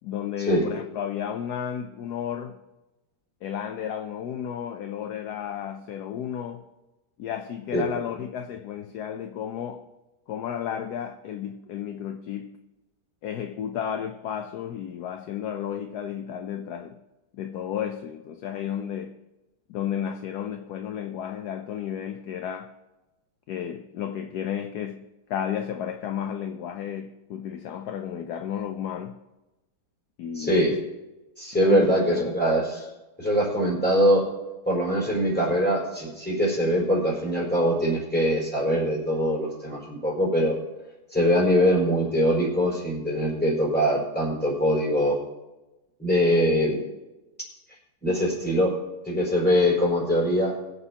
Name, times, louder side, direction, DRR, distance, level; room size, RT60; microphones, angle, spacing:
voice 1, 0.0-2.6 3.4-6.7 7.2-9.9 10.3-12.6 13.2-17.0 17.3-19.1 19.7-22.7 23.5-29.2 30.2-30.8 31.5-32.3, left 9 dB, 70° left, 1.1 m, -33 dB
voice 2, 30.3-30.8 31.4-32.9 33.2-34.3 34.7-40.6 41.1-45.2 46.0-46.8 48.0-48.7 49.0-50.5, equal, 5° left, 4.8 m, -22 dB
22.5 x 8.2 x 2.9 m
omnidirectional pair, 1.9 m